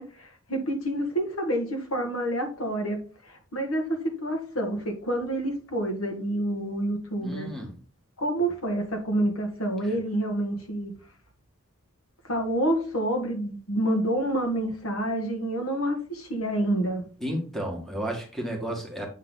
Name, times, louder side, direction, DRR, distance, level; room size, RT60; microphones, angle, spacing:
voice 1, 0.0-3.0 3.2-7.5 8.2-10.9 12.2-17.1, right 1 dB, 70° left, 1.6 m, -28 dB
voice 2, 7.2-7.7 9.9-10.0 17.2-19.1, equal, ahead, 1.8 m, -32 dB
8.1 x 3.8 x 3.9 m
head